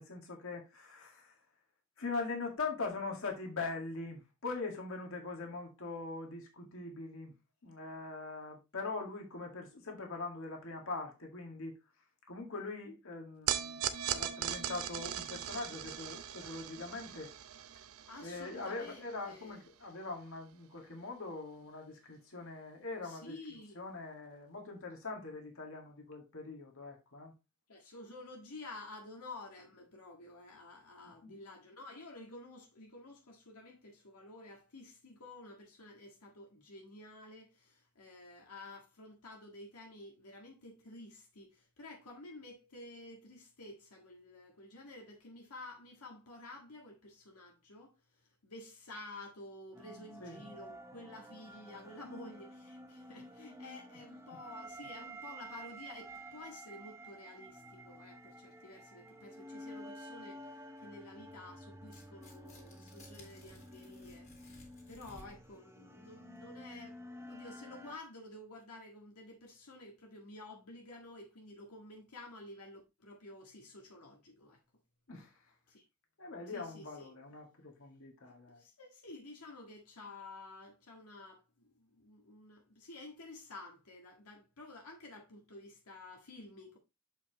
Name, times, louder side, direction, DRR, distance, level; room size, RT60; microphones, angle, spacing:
voice 1, 0.0-1.3 2.0-7.3 7.6-11.8 12.3-17.3 18.2-23.4 23.7-27.3 31.0-31.3 50.2-50.5 53.9-54.0 54.3-54.4 75.1-75.3 76.2-78.6, left 3 dB, 65° left, 2.0 m, -42 dB
sound 1, 13.5-19.9, right 10 dB, 65° right, 0.6 m, -39 dB
voice 2, 18.1-19.6 23.0-23.8 27.7-47.9 48.4-64.3 64.9-67.0 67.3-74.6 75.7-75.8 76.5-77.1 78.2-86.8, left 2 dB, 80° left, 1.7 m, -51 dB
sound 2, 49.7-68.0, right 1 dB, 10° right, 0.7 m, -51 dB
Tearing, 61.8-65.6, left 2 dB, 30° left, 2.6 m, -58 dB
6.9 x 5.8 x 3.0 m
head